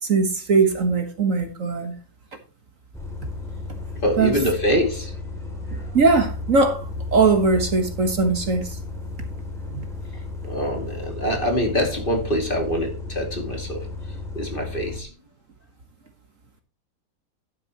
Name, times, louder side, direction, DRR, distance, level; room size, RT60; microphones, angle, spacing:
voice 1, 0.0-1.9 4.2-4.4 5.9-8.8 9.7-9.9, right 4 dB, 55° right, 1.7 m, -20 dB
Bus, 2.9-15.0, left 3 dB, ahead, 2.7 m, -34 dB
voice 2, 4.0-5.1 10.4-13.8 14.3-15.1, equal, 30° left, 2.7 m, -24 dB
11.0 x 9.4 x 3.0 m
omnidirectional pair, 1.7 m